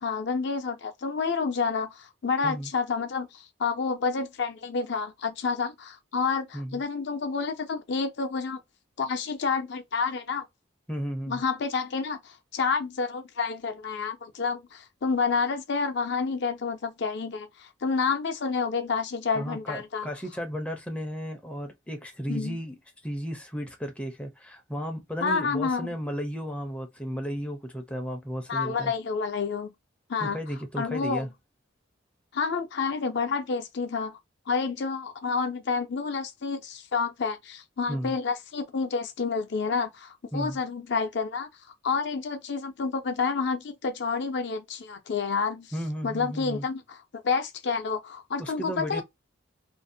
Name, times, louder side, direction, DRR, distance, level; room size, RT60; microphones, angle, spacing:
voice 1, 0.0-8.6 9.0-10.5 11.3-20.1 22.3-22.6 25.2-25.9 28.5-29.7 30.1-30.4 30.8-31.3 32.3-34.2 34.5-41.5 41.8-45.7 46.0-49.0, left 5 dB, 60° left, 0.5 m, -29 dB
voice 2, 10.9-11.4 19.3-22.7 23.0-28.9 30.2-31.3 37.9-38.2 40.3-40.6 45.7-46.6 48.4-49.0, equal, 5° left, 0.5 m, -34 dB
2.5 x 2.0 x 2.6 m
head